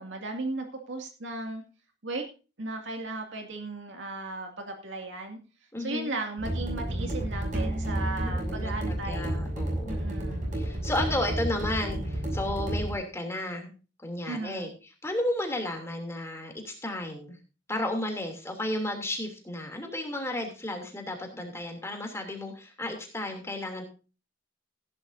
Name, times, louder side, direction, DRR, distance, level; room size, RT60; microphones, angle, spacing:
voice 1, 0.0-1.6 2.0-2.2 2.6-5.4 5.8-9.3 9.9-10.5 14.3-14.7, right 2 dB, 75° right, 3 dB, 2.3 m, -36 dB
voice 2, 5.7-6.2 8.2-10.1 10.5-13.7 14.0-14.7 15.0-17.4 17.7-23.8, left 1 dB, 15° left, 3 dB, 2.9 m, -33 dB
sound 1, 6.4-12.9, right 1 dB, 45° right, 6.4 m, -31 dB
16.5 x 10.5 x 2.7 m, 0.34 s
head